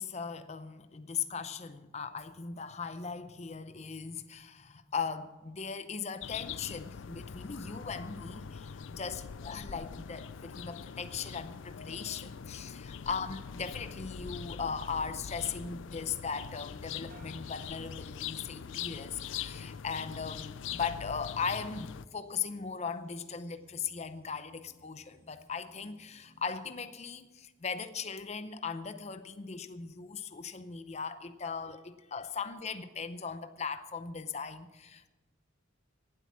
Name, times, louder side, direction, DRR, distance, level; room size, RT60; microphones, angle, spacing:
voice 1, 0.0-35.1, left 5 dB, 35° left, 11 dB, 0.6 m, -38 dB
sound 1, 6.2-22.1, left 7 dB, 75° left, 0.4 m, -43 dB
sound 2, 12.8-26.8, equal, 15° right, 2.9 m, -63 dB
sound 3, 17.1-18.8 19.2-19.8, right 3 dB, 50° right, 1.5 m, -61 dB
17.5 x 8.2 x 6.1 m, 1.1 s
head